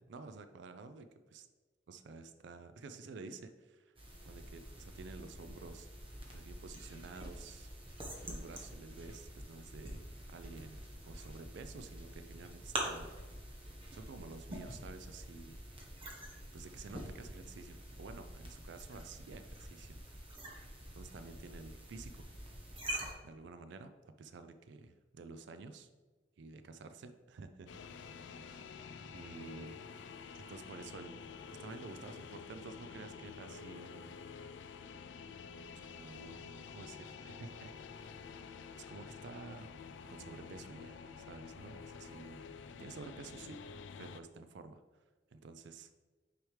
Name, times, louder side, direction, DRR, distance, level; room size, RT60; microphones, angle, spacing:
voice 1, 0.1-1.5 1.9-3.9 4.2-7.7 8.2-10.0 10.3-13.1 13.9-15.6 16.5-20.2 20.9-22.3 23.2-25.9 26.4-27.7 28.3-28.6 29.1-29.8 30.3-31.2 31.5-34.2 35.8-37.8 38.9-39.7 40.1-42.4 42.8-43.6 44.0-44.8 45.3-45.9, right 4 dB, 70° right, 10 dB, 0.4 m, -51 dB
sound 1, 4.0-23.1, right 1 dB, 30° right, 1.1 m, -46 dB
sound 2, 27.7-44.2, left 6 dB, 75° left, 0.4 m, -49 dB
6.3 x 4.9 x 3.2 m, 1.3 s
head